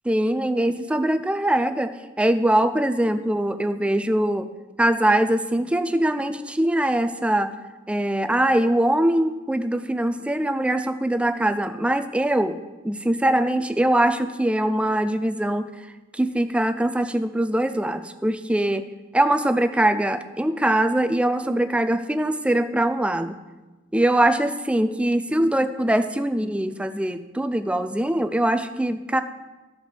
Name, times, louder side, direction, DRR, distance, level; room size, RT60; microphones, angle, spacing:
voice 1, 0.1-1.9 2.2-4.5 4.8-7.5 7.9-12.6 12.8-15.7 16.1-18.8 19.1-23.4 23.9-29.2, right 1 dB, 5° right, 9 dB, 0.3 m, -22 dB
13.0 x 5.1 x 3.4 m, 1.2 s
head